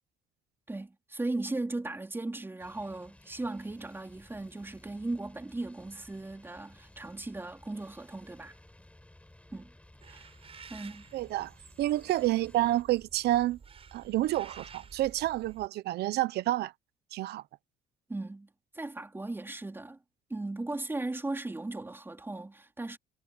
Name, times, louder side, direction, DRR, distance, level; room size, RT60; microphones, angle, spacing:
voice 1, 0.7-8.5 9.5-9.7 10.1-10.3 10.7-11.1 18.1-18.5 18.7-20.0 20.3-23.0, right 2 dB, 15° right, 3.9 m, -37 dB
sound 1, 2.6-12.8, left 1 dB, 5° left, 6.1 m, -57 dB
sound 2, 10.0-15.7, right 6 dB, 35° right, 5.2 m, -52 dB
voice 2, 11.1-11.5 11.8-13.6 13.9-16.7 17.1-17.4, right 15 dB, 75° right, 1.0 m, -29 dB
cardioid pair, 110°, 17 cm